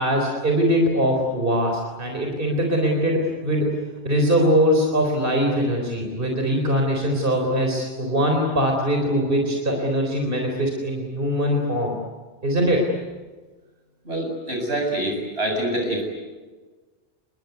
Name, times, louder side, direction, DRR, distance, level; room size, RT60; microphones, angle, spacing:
voice 1, 0.0-3.8 4.0-11.9 12.4-12.8, equal, 50° right, 2 dB, 4.2 m, -22 dB
voice 2, 14.0-16.0, right 1 dB, 65° right, 2 dB, 7.9 m, -25 dB
28.5 x 22.0 x 9.5 m, 1.3 s
omnidirectional pair, 1.2 m